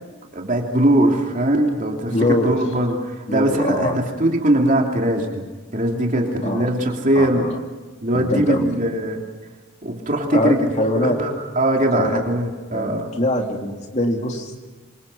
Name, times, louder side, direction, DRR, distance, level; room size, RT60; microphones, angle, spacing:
voice 1, 0.3-5.4 5.7-7.6 8.0-9.2 9.8-13.1, right 1 dB, 40° right, 1 dB, 3.1 m, -21 dB
voice 2, 2.1-2.5 3.3-4.0 6.4-6.6 7.1-7.5 8.1-8.7 10.3-11.2 11.9-12.2 12.7-14.6, left 1 dB, 35° left, 2 dB, 3.3 m, -23 dB
27.0 x 26.5 x 5.7 m, 1.3 s
head